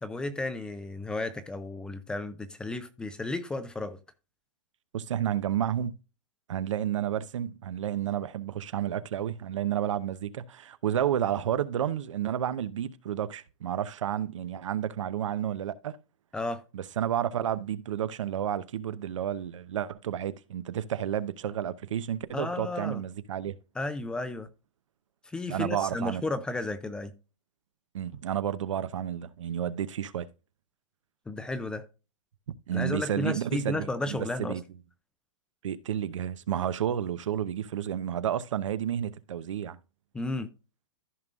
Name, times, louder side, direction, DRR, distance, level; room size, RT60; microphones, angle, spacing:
voice 1, 0.0-4.0 16.3-16.6 22.3-23.0 23.8-24.5 25.3-27.1 31.3-31.9 32.7-34.6 40.1-40.5, left 2 dB, 5° left, 0.4 m, -33 dB
voice 2, 4.9-6.0 6.5-16.0 16.7-23.5 25.5-26.2 27.9-30.3 32.7-34.6 35.6-39.8, right 10 dB, 80° right, 0.8 m, -31 dB
14.0 x 5.3 x 2.4 m
hypercardioid pair, 160°, 16 cm